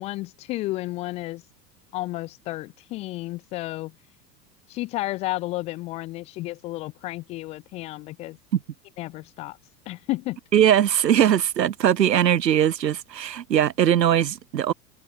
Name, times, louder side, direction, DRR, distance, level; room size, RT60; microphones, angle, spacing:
voice 1, 0.0-1.4 1.9-4.0 4.7-8.4 9.0-9.6 9.9-10.4, left 18 dB, 15° left, 0.3 m, -32 dB
voice 2, 10.5-14.7, right 10 dB, 75° right, 0.8 m, -20 dB
figure-of-eight pair, 80°, 50 cm